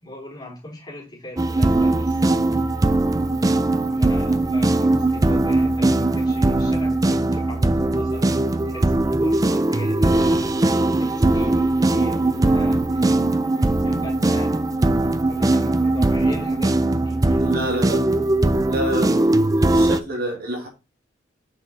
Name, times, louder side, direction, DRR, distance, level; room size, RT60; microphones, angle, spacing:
voice 1, 0.0-2.2 3.9-10.6 11.0-13.2 13.6-14.7 15.3-17.5 18.9-19.2, left 1 dB, 20° left, 3.9 m, -38 dB
sound 1, 1.4-20.0, right 2 dB, 20° right, 0.4 m, -20 dB
voice 2, 17.4-18.1 18.7-19.4 19.6-20.7, right 1 dB, 50° right, 1.9 m, -27 dB
6.1 x 5.7 x 4.1 m
head